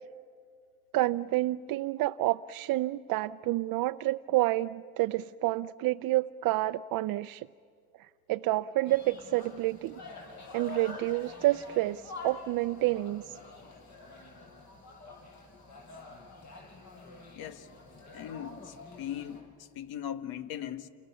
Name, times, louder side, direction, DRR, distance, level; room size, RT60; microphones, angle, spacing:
voice 1, 0.9-7.5 8.0-9.9 10.5-13.4, right 17 dB, 70° right, 0.6 m, -29 dB
sound 1, 8.8-19.4, left 3 dB, 50° left, 7.9 m, -47 dB
voice 2, 17.4-17.7 18.1-20.9, left 10 dB, 80° left, 1.6 m, -39 dB
29.5 x 28.5 x 7.1 m
supercardioid pair, 85°, 36 cm